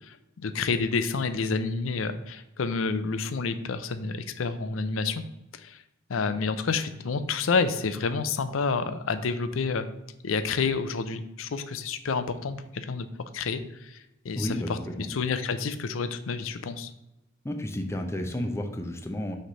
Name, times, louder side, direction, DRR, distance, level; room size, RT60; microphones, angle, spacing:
voice 1, 0.0-5.2 5.5-5.8 6.1-9.9 10.2-13.1 13.3-16.9, left 4 dB, 85° left, 11 dB, 0.5 m, -29 dB
voice 2, 14.3-15.1 17.4-19.4, left 1 dB, 15° left, 4 dB, 0.6 m, -32 dB
6.4 x 3.3 x 5.4 m, 0.92 s
head